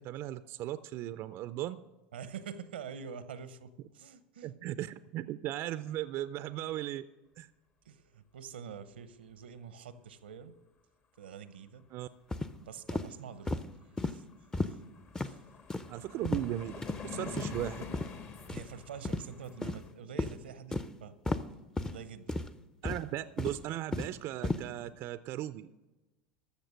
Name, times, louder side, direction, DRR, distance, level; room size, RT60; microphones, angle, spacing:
voice 1, 0.0-1.8 4.4-7.0 7.4-7.5 11.9-12.1 15.9-16.7 17.0-17.8 22.8-25.8, right 13 dB, 50° right, 14 dB, 0.4 m, -37 dB
voice 2, 2.1-4.5 7.8-10.5 11.2-11.9 12.6-13.8 14.1-14.2 14.7-14.8 15.2-15.4 18.5-21.2 21.9-22.4, right 7 dB, 90° right, 13 dB, 0.8 m, -46 dB
sound 1, 12.3-12.5 12.9-13.1 13.5-13.7 14.0-14.1 14.5-14.7 15.2-15.3 15.7-15.9 16.2-16.5 16.8-17.0 17.4-17.6 17.9-18.1 18.5-18.7 19.0-19.2 19.6-19.9 20.2-20.3 20.7-20.9 21.3-21.4 21.8-22.0 22.3-22.5 22.8-23.1 23.4-24.1 24.4-24.6, left 2 dB, 10° left, 0.6 m, -33 dB
sound 2, 13.8-13.9 14.2-19.9, left 5 dB, 45° left, 1.4 m, -46 dB
14.0 x 6.6 x 6.4 m, 1.1 s
hypercardioid pair, 90°, 5 cm